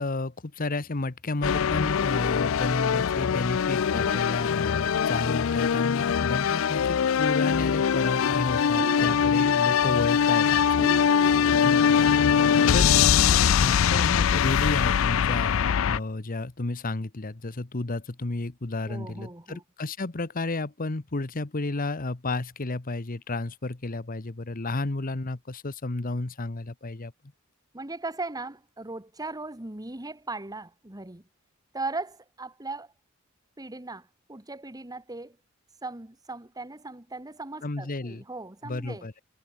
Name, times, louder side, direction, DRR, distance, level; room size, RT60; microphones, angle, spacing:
voice 1, 0.0-10.9 11.6-12.4 12.7-12.9 13.5-27.1 37.6-38.2 38.6-39.1, left 2 dB, 45° left, 1.1 m, -32 dB
sound 1, 1.4-16.0, left 7 dB, 70° left, 0.4 m, -22 dB
voice 2, 3.9-4.4 9.0-9.3 10.8-11.4 18.9-19.6 27.7-31.2 31.7-32.9 33.6-35.4 35.8-39.1, right 2 dB, 20° right, 1.6 m, -38 dB
sound 2, 8.7-9.6 10.8-11.7, right 2 dB, 40° right, 0.9 m, -38 dB
head